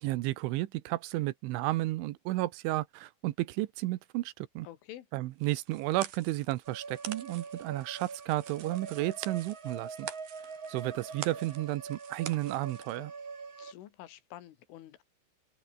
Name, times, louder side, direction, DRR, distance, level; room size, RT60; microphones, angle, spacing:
voice 1, 0.0-4.7 5.1-10.1 10.7-13.1, right 18 dB, 80° right, 3.3 m, -32 dB
voice 2, 4.6-5.1 13.6-15.0, left 13 dB, 80° left, 4.3 m, -48 dB
chocolate bar breaking, 5.4-13.0, right 10 dB, 60° right, 3.4 m, -47 dB
sound 1, 6.6-13.7, right 5 dB, 30° right, 3.2 m, -44 dB
open air
omnidirectional pair, 5.6 m